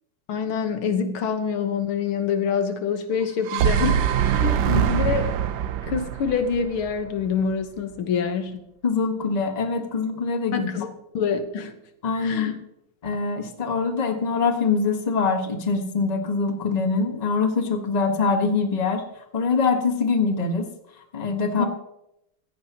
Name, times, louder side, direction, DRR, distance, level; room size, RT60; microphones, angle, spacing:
voice 1, 0.3-5.3 5.9-8.6 10.5-11.7 12.2-12.5 21.6-21.7, left 6 dB, 90° left, 8 dB, 2.1 m, -26 dB
sound 1, 3.2-7.4, right 9 dB, 65° right, 1.2 m, -23 dB
voice 2, 4.4-4.8 8.8-10.7 12.0-12.6 13.0-19.0 19.3-20.7 21.1-21.7, left 4 dB, 25° left, 5 dB, 1.2 m, -24 dB
16.5 x 14.5 x 3.0 m, 0.82 s
omnidirectional pair, 2.3 m